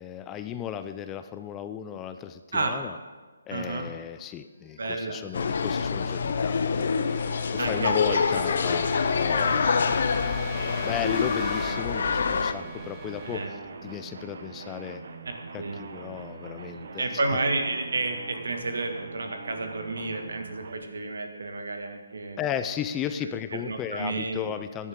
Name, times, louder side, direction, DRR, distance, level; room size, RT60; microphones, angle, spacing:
voice 1, 0.0-3.0 3.5-10.2 10.8-15.0 15.5-17.2 22.4-24.9, left 9 dB, 15° left, 10 dB, 0.4 m, -35 dB
voice 2, 3.5-3.9 4.8-5.2 7.6-8.8 9.4-10.0 13.2-13.5 15.6-15.8 17.0-22.4 23.2-24.4, right 3 dB, 75° right, 5 dB, 1.9 m, -31 dB
sound 1, 4.9-14.6, right 2 dB, 15° right, 1.6 m, -41 dB
sound 2, 5.3-12.5, left 5 dB, 60° left, 0.6 m, -26 dB
sound 3, 11.3-20.7, right 4 dB, 55° right, 1.1 m, -43 dB
15.5 x 11.0 x 3.7 m, 1.4 s
hypercardioid pair, 155°, 0 cm